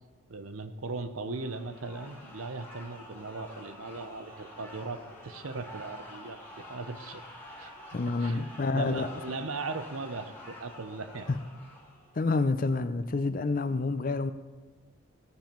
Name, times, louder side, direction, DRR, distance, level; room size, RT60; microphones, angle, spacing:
voice 1, 0.3-7.2 7.6-7.7 8.0-8.4 8.7-11.3, right 3 dB, 90° right, 0.8 m, -38 dB
sound 1, 1.2-12.2, left 1 dB, 10° left, 1.6 m, -48 dB
voice 2, 7.9-9.1 12.1-14.3, left 3 dB, 40° left, 0.4 m, -28 dB
16.0 x 7.1 x 4.5 m
head